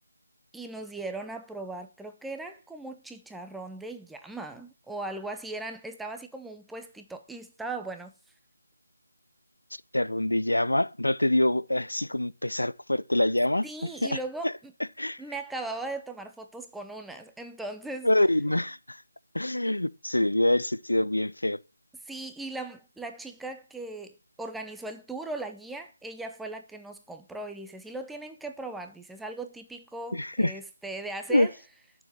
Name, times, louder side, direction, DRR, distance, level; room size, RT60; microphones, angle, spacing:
voice 1, 0.5-8.1 13.6-14.7 15.2-18.1 22.1-31.5, right 2 dB, ahead, 0.7 m, -38 dB
voice 2, 9.9-14.2 14.4-14.5 15.0-15.2 18.0-19.0 19.3-21.6 30.1-30.5 31.3-31.5, left 1 dB, 80° left, 0.8 m, -25 dB
11.5 x 7.1 x 8.8 m
figure-of-eight pair, 160°, 0 cm